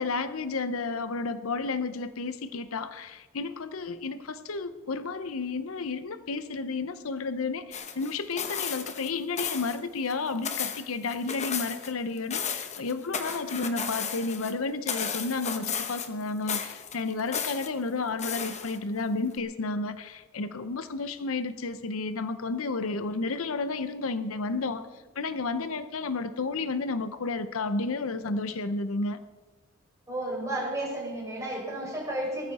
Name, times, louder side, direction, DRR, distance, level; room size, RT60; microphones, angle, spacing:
voice 1, 0.0-29.2, left 3 dB, 70° left, 12 dB, 0.7 m, -32 dB
sound 1, 7.7-9.1 9.4-9.8 10.1-11.9 12.2-14.5 14.9-16.2 16.5-17.7 18.2-19.0 19.4-19.5, left 7 dB, 30° left, 1.1 m, -34 dB
voice 2, 30.1-32.5, right 1 dB, 15° right, -4 dB, 5.9 m, -32 dB
19.0 x 14.0 x 4.2 m, 1.3 s
head